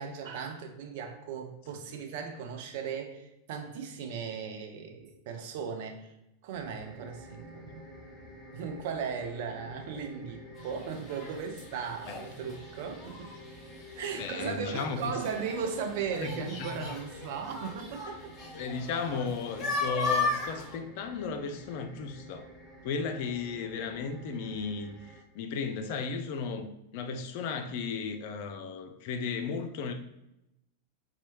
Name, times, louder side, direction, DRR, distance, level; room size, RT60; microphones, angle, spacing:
voice 1, 0.0-6.1 6.4-7.8 8.5-13.3 14.0-18.3, right 6 dB, 50° right, 4 dB, 0.5 m, -37 dB
sound 1, 6.5-25.2, equal, 5° right, 0.8 m, -50 dB
sound 2, 10.6-20.8, left 3 dB, 25° left, 0.9 m, -37 dB
voice 2, 14.2-15.1 16.2-16.9 18.6-22.5 22.8-25.0 25.3-29.9, left 5 dB, 50° left, 7 dB, 0.3 m, -35 dB
4.2 x 2.2 x 2.9 m, 0.87 s
figure-of-eight pair, 90°, 0 cm